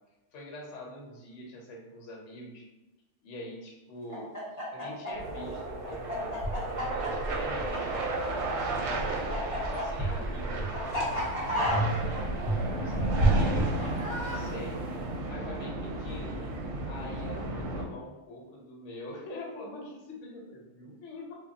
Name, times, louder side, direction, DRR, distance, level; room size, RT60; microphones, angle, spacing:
voice 1, 0.3-2.7 3.2-4.3 4.7-9.0 9.5-10.6 11.6-14.8 15.3-16.5 16.8-21.3, left 1 dB, 75° left, -1 dB, 1.0 m, -44 dB
Chicken rooster, 4.1-8.5 8.8-14.4, left 1 dB, 20° left, 0.7 m, -33 dB
sound 1, 5.1-17.8, right 2 dB, 65° right, 0.8 m, -34 dB
sound 2, 5.6-5.7 6.4-8.3 8.7-11.1 11.6-14.4, right 2 dB, 40° right, 0.4 m, -31 dB
3.3 x 2.2 x 2.5 m, 1.1 s
omnidirectional pair, 1.3 m